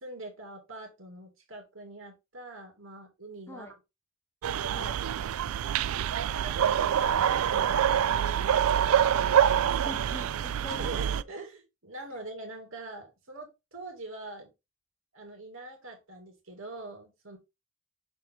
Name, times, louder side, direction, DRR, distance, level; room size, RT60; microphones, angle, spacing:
voice 1, 0.0-3.7 4.6-4.9 6.1-9.1 10.7-14.5 15.1-17.4, right 2 dB, 65° right, 2.7 m, -44 dB
sound 1, 4.4-11.2, right 9 dB, 85° right, 0.4 m, -26 dB
voice 2, 4.7-5.0 9.8-11.0, left 1 dB, 10° left, 0.8 m, -43 dB
6.5 x 4.5 x 3.7 m
head